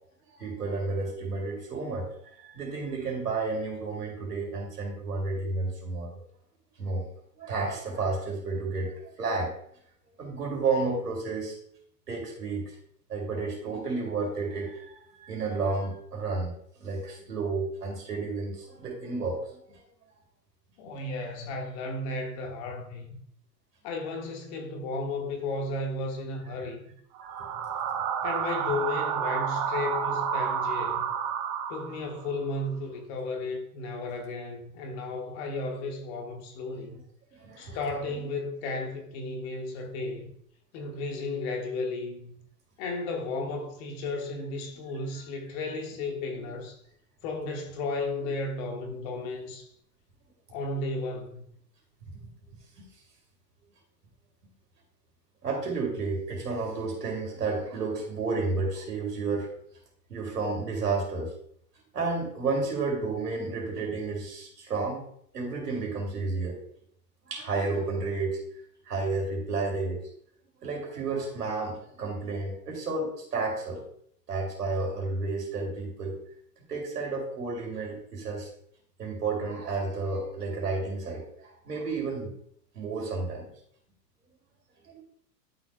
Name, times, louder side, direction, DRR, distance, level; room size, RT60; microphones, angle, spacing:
voice 1, 0.4-2.1 2.4-6.2 6.8-7.1 7.4-8.9 9.2-9.5 10.2-11.5 12.1-12.7 13.1-14.9 15.2-16.5 16.8-19.8 27.4-27.5 37.3-37.8 38.1-38.2 52.8-52.9 55.4-59.5 60.1-61.3 61.9-65.0 65.3-66.6 67.3-68.4 68.9-70.0 70.6-73.8 74.3-76.2 76.7-78.5 79.0-82.3 82.7-83.5 84.9-85.0, right 3 dB, 70° right, 3.0 m, -31 dB
voice 2, 20.8-23.2 23.8-26.8 28.2-31.0 31.7-37.0 37.6-40.3 40.7-42.3 42.8-46.8 47.2-49.7 50.5-51.4, left 2 dB, 40° left, 1.6 m, -34 dB
sound 1, 27.2-32.2, right 7 dB, 35° right, 0.9 m, -30 dB
12.0 x 6.1 x 2.2 m
figure-of-eight pair, 95°, 48 cm